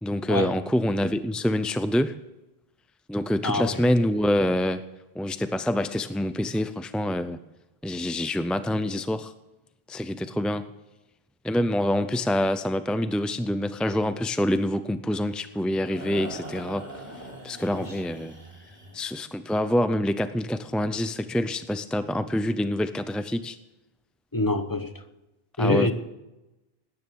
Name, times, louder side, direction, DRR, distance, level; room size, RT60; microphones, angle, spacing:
voice 1, 0.0-2.2 3.1-4.8 5.1-7.4 7.8-9.3 9.9-10.7 11.4-16.9 17.4-18.3 18.9-23.6 25.6-25.9, left 1 dB, ahead, 0.3 m, -26 dB
voice 2, 3.4-3.8 17.7-17.8 24.3-24.9 25.6-25.9, left 2 dB, 20° left, 1.0 m, -25 dB
sound 1, 15.2-19.1, right 1 dB, 45° right, 3.5 m, -42 dB
18.5 x 10.0 x 7.0 m
omnidirectional pair, 1.0 m